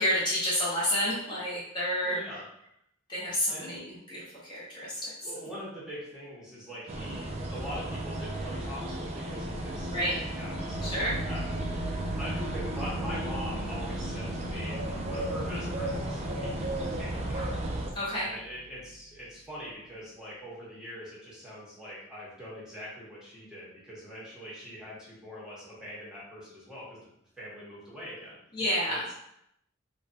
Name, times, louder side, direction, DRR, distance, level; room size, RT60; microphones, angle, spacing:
voice 1, 0.0-2.2 3.1-5.1 9.9-10.1 10.8-11.2 18.0-18.3 28.5-29.0, equal, 25° left, -8 dB, 0.7 m, -29 dB
voice 2, 2.0-2.4 3.5-3.7 5.2-11.6 12.2-14.8 15.0-17.5 18.1-27.1 27.4-28.4 28.9-29.1, equal, 5° right, -7 dB, 0.9 m, -43 dB
sound 1, 6.9-17.9, right 1 dB, 35° right, 0.4 m, -34 dB
sound 2, 9.8-19.6, right 2 dB, 55° left, 0.3 m, -42 dB
3.2 x 2.2 x 2.6 m, 0.77 s
head